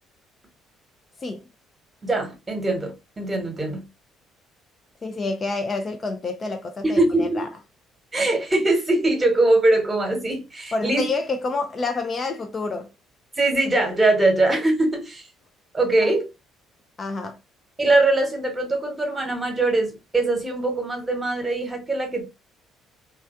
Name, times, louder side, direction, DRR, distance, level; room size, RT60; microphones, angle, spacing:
voice 1, 2.0-3.9 6.8-7.5 8.1-11.1 13.4-15.2 15.7-16.3 17.8-22.3, right 2 dB, 20° right, 1.1 m, -22 dB
voice 2, 5.0-7.5 10.7-12.9 16.0-16.1 17.0-17.4, left 3 dB, 35° left, 0.5 m, -28 dB
3.1 x 2.4 x 2.5 m
figure-of-eight pair, 50°, 0 cm